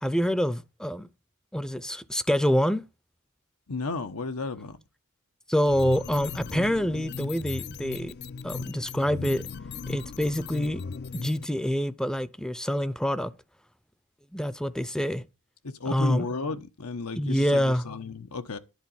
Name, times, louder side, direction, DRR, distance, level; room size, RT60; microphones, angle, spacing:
voice 1, 0.0-1.1 1.5-2.8 5.5-8.1 8.4-9.4 9.9-10.8 11.1-13.3 14.3-15.2 15.9-16.3 17.1-17.8, equal, 5° left, 0.5 m, -26 dB
voice 2, 3.7-4.8 15.6-18.6, left 3 dB, 85° left, 1.1 m, -33 dB
sound 1, 5.6-11.5, left 5 dB, 50° left, 0.5 m, -37 dB
10.5 x 4.0 x 7.1 m
head